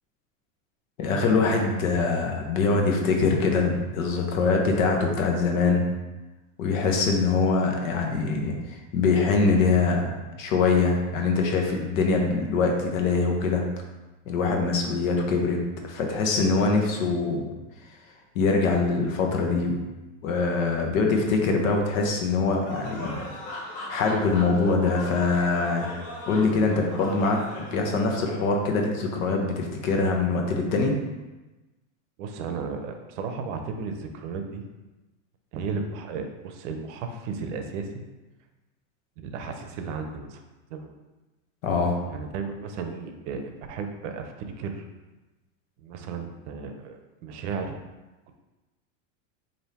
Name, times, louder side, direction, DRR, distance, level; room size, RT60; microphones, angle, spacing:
voice 1, 1.0-5.8 6.6-13.6 14.3-17.5 18.3-19.8 20.2-23.3 23.9-25.9 26.3-30.9 41.6-42.0, left 4 dB, 80° left, 2 dB, 0.9 m, -23 dB
sound 1, 22.7-27.8, left 2 dB, 20° left, 0.4 m, -38 dB
voice 2, 32.2-34.6 35.5-38.0 39.2-40.4 40.7-40.9 42.1-44.3 44.6-44.8 45.8-47.7, right 5 dB, 60° right, 5 dB, 0.6 m, -34 dB
3.4 x 2.7 x 4.1 m, 1.1 s
supercardioid pair, 160°, 40 cm